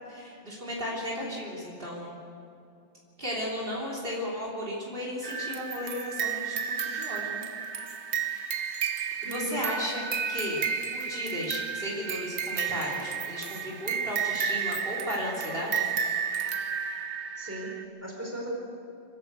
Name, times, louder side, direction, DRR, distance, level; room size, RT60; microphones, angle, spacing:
voice 1, 0.1-2.2 3.2-7.4 8.2-8.5 9.2-10.6 10.9-15.9, equal, 50° right, -4 dB, 3.7 m, -35 dB
sound 1, 5.2-17.8, right 7 dB, 75° right, 1.3 m, -32 dB
voice 2, 9.2-9.6 17.4-18.5, right 1 dB, 10° right, -2 dB, 4.4 m, -37 dB
26.0 x 13.0 x 8.1 m, 2.6 s
omnidirectional pair, 1.2 m